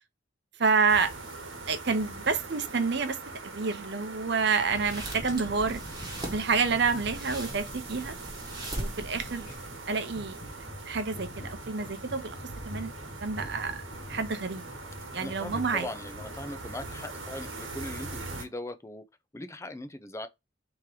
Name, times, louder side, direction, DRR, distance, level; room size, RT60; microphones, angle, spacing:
voice 1, 0.6-1.1 1.7-3.2 3.4-5.8 6.3-8.2 8.8-9.5 9.9-10.4 10.9-12.4 12.6-13.8 14.1-14.6 15.1-15.9, right 5 dB, 60° right, 0.8 m, -28 dB
sound 1, 0.9-18.4, right 3 dB, 80° right, 1.4 m, -42 dB
sound 2, 4.6-9.8, right 1 dB, 20° right, 1.2 m, -40 dB
sound 3, 4.7-18.0, left 1 dB, 40° left, 0.9 m, -46 dB
voice 2, 15.2-19.0 19.3-20.3, left 1 dB, 15° left, 0.5 m, -40 dB
3.6 x 3.0 x 4.7 m
head